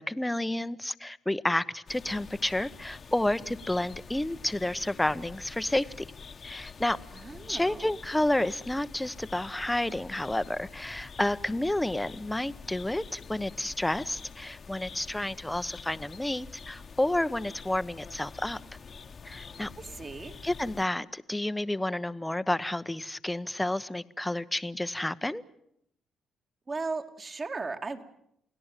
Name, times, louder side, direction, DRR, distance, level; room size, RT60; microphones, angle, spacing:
voice 1, 0.0-6.1 6.4-7.0 7.5-18.6 19.2-19.7 20.4-25.4, left 1 dB, 10° left, 14 dB, 1.0 m, -30 dB
sound 1, 1.9-20.8, left 5 dB, 45° left, 1.4 m, -47 dB
voice 2, 7.1-7.9 19.8-20.3 26.7-28.0, right 3 dB, 35° right, 6 dB, 2.5 m, -36 dB
29.5 x 17.5 x 9.1 m, 0.75 s
cardioid pair, 90°, 0 cm